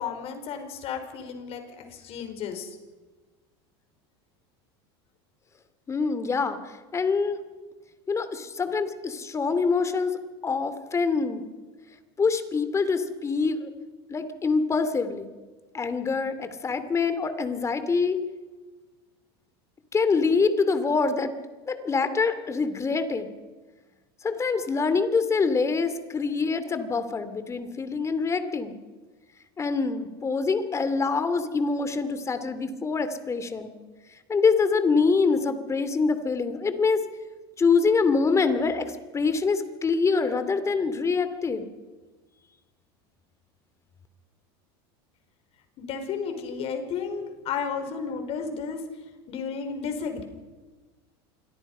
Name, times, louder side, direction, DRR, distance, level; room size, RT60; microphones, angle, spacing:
voice 1, 0.0-2.8 45.8-48.8 49.3-50.2, left 6 dB, 50° left, 6 dB, 5.0 m, -33 dB
voice 2, 5.9-7.4 8.1-10.2 10.4-11.4 12.2-13.7 14.1-15.3 15.7-18.2 19.9-21.3 21.7-23.3 24.2-28.7 29.6-33.7 34.3-37.0 37.6-41.7, left 4 dB, 20° left, 11 dB, 2.6 m, -25 dB
27.0 x 22.0 x 5.6 m, 1.3 s
supercardioid pair, 110°, 13 cm